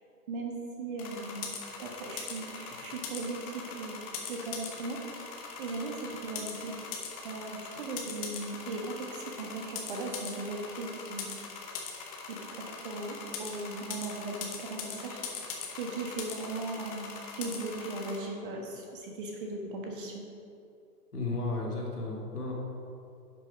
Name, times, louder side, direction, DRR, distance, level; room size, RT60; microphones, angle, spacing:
voice 1, 0.3-4.0 4.3-5.0 5.6-6.7 7.2-11.3 12.3-15.2 15.8-17.1 17.4-20.2, right 2 dB, 30° right, 1 dB, 1.3 m, -38 dB
sound 1, 1.0-18.2, left 6 dB, 20° left, 1.0 m, -41 dB
voice 2, 21.1-22.5, left 3 dB, 70° left, -2 dB, 2.4 m, -33 dB
10.5 x 6.0 x 5.0 m, 2.5 s
figure-of-eight pair, 120°, 49 cm